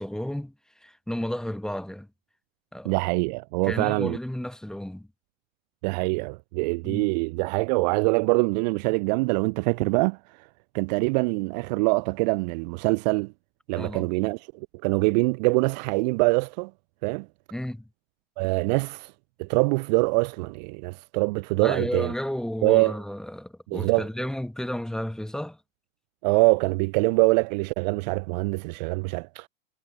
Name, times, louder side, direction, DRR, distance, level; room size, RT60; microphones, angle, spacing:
voice 1, 0.0-2.1 2.7-3.0 3.6-5.1 6.8-7.1 13.8-14.1 17.5-17.9 21.6-25.6, left 1 dB, ahead, 1.3 m, -32 dB
voice 2, 2.8-4.2 5.8-10.5 10.7-13.3 13.7-16.7 17.0-17.3 18.4-19.1 19.4-22.1 22.6-23.0 23.7-24.1 26.2-29.5, right 29 dB, 35° right, 0.6 m, -24 dB
figure-of-eight pair, 100°, 39 cm